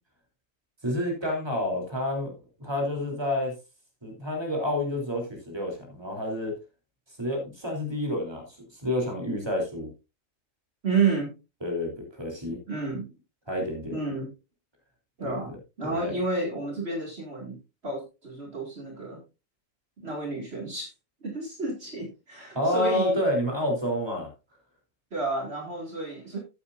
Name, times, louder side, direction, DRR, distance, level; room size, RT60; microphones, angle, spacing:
voice 1, 0.8-2.3 2.6-3.5 4.0-6.6 7.2-8.4 8.7-9.9 11.6-12.6 13.5-13.9 15.2-15.5 15.8-16.1 22.5-24.3, left 1 dB, 20° right, 1 dB, 3.2 m, -29 dB
voice 2, 10.8-11.3 12.7-13.1 13.9-14.3 15.2-19.2 20.0-20.9 21.2-23.2 25.1-26.4, right 4 dB, 50° right, 0 dB, 2.4 m, -30 dB
14.0 x 8.5 x 2.5 m, 0.27 s
omnidirectional pair, 1.4 m